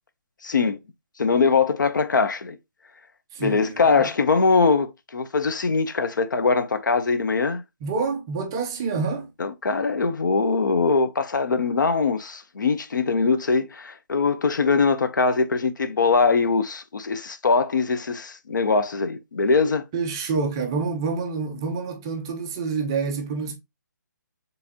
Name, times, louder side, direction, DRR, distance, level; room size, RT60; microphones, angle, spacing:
voice 1, 0.4-0.8 1.2-2.6 3.4-7.6 9.4-19.8, left 4 dB, 75° left, 0.6 m, -22 dB
voice 2, 3.3-4.1 7.8-9.3 19.9-23.5, right 4 dB, 15° right, 0.3 m, -27 dB
4.3 x 3.3 x 2.8 m
hypercardioid pair, 170°, 10 cm